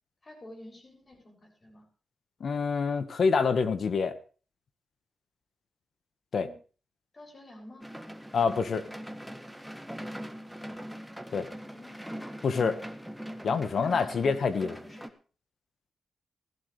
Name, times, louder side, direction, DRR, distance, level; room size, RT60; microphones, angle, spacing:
voice 1, 0.2-1.8 6.3-6.6 7.1-7.9 10.6-10.9 11.3-11.9 13.5-14.2 14.7-15.0, left 1 dB, 40° left, 2 dB, 6.7 m, -49 dB
voice 2, 2.4-4.1 6.3-6.5 8.3-8.8 11.3-11.4 12.4-12.8 13.4-14.8, left 5 dB, 65° left, 11 dB, 1.4 m, -26 dB
sound 1, 7.8-15.1, equal, ahead, 1.6 m, -42 dB
16.5 x 14.0 x 3.3 m, 0.37 s
supercardioid pair, 50°, 0 cm